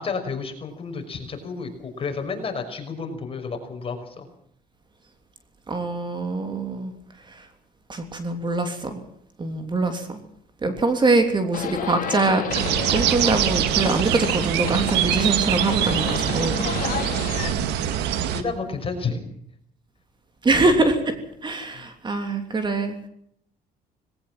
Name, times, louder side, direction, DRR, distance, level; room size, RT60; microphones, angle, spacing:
voice 1, 0.0-4.3 18.3-19.2 21.7-21.9, left 4 dB, 35° left, 5 dB, 5.8 m, -31 dB
voice 2, 5.7-6.9 7.2-7.5 7.9-9.0 9.4-10.2 10.6-16.6 20.4-21.2 21.4-23.0, right 3 dB, 25° right, 7 dB, 3.3 m, -23 dB
Livestock farm animals working animals, 11.5-17.5, left 8 dB, 55° left, 3.7 m, -32 dB
sound 1, 12.5-18.4, right 10 dB, 85° right, 2.1 m, -24 dB
20.0 x 18.0 x 7.6 m, 0.69 s
cardioid pair, 110°, 17 cm